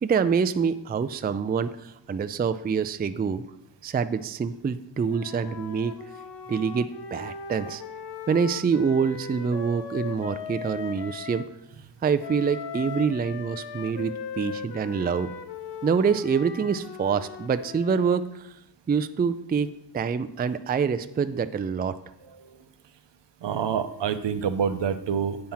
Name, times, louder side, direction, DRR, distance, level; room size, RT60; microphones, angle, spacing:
voice 1, 0.0-3.4 3.8-5.9 6.5-7.8 8.3-11.5 12.0-15.3 15.8-18.5 18.9-22.0, right 6 dB, 25° right, 12 dB, 0.3 m, -26 dB
Wind instrument woodwind instrument, 5.1-11.5 12.2-18.2, left 6 dB, 65° left, 0.7 m, -39 dB
voice 2, 23.4-25.5, right 7 dB, 75° right, 10 dB, 0.7 m, -27 dB
8.7 x 4.4 x 5.6 m, 0.80 s
wide cardioid pair, 80°, 43 cm